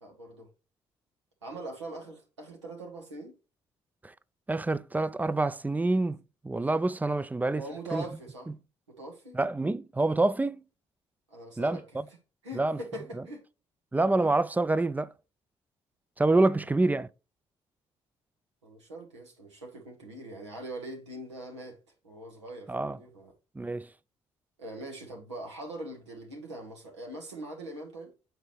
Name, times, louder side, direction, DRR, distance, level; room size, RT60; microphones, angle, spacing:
voice 1, 0.0-0.5 1.4-3.3 7.6-8.5 9.0-9.4 11.3-12.2 12.4-13.4 16.5-17.0 18.6-21.8 22.0-23.3 24.6-28.1, right 1 dB, 90° right, 0.9 m, -42 dB
voice 2, 4.5-6.2 6.4-7.6 7.9-8.0 9.3-10.6 11.6-11.8 12.6-12.8 13.9-15.1 16.2-17.1 22.7-23.0 23.6-23.9, right 2 dB, 10° right, 0.4 m, -26 dB
7.8 x 4.5 x 3.2 m
figure-of-eight pair, 45°, 15 cm